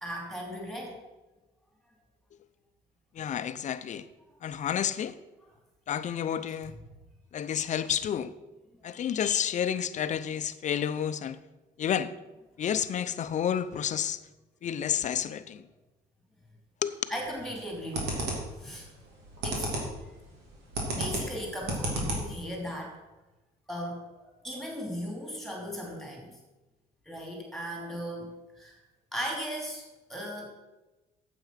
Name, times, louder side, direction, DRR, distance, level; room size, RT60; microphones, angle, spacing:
voice 1, 0.0-1.0 6.1-6.2 13.2-13.3 17.1-18.9 19.4-19.7 20.9-23.0 23.7-26.3 27.0-28.8 29.1-30.5, equal, ahead, 3.0 m, -37 dB
voice 2, 3.1-4.1 4.4-5.2 5.9-6.7 7.3-8.3 8.8-11.4 11.8-12.1 12.6-14.2 14.6-15.6 16.8-16.9, left 9 dB, 45° left, 0.6 m, -30 dB
sound 1, 17.2-17.5 17.9-18.6 19.0-20.0 20.3-22.5, right 1 dB, 85° right, 2.9 m, -32 dB
9.0 x 7.7 x 5.8 m
cardioid pair, 110°, 17 cm